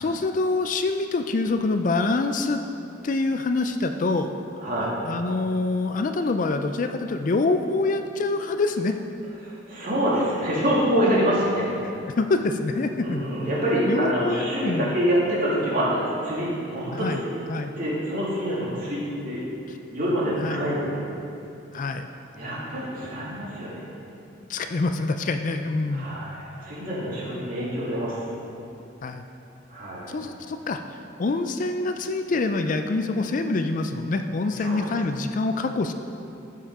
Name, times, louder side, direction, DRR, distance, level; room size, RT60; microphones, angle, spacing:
voice 1, 0.0-2.6 3.0-4.3 5.0-9.0 11.8-13.3 13.6-14.9 16.9-17.2 17.5-17.7 20.4-20.7 21.7-22.1 24.5-26.1 29.0-29.3 30.1-35.9, left 3 dB, 40° left, 7 dB, 0.4 m, -26 dB
voice 2, 4.6-4.9 9.4-11.7 13.0-17.3 17.8-19.4 19.9-21.0 22.3-23.8 25.9-28.2 29.7-30.1 34.6-34.8, equal, 45° right, -7 dB, 2.6 m, -26 dB
14.0 x 5.6 x 4.8 m, 2.7 s
head